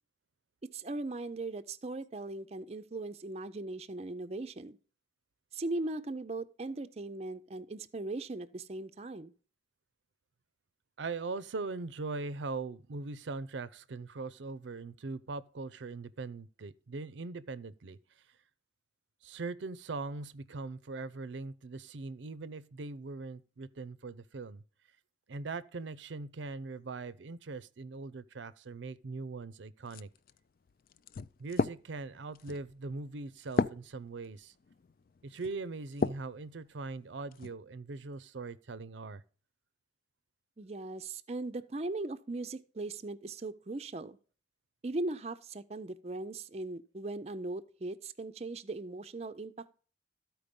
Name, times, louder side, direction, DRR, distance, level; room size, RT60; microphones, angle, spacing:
voice 1, 0.6-4.8 5.5-9.3 40.6-44.2 44.8-49.7, right 2 dB, 35° right, 0.5 m, -39 dB
voice 2, 11.0-18.0 19.2-24.6 25.3-30.1 31.4-34.5 35.2-39.2, right 3 dB, 80° right, 0.6 m, -41 dB
sound 1, 29.8-36.4 36.9-37.5, left 4 dB, 50° left, 0.3 m, -36 dB
13.5 x 4.6 x 5.2 m
head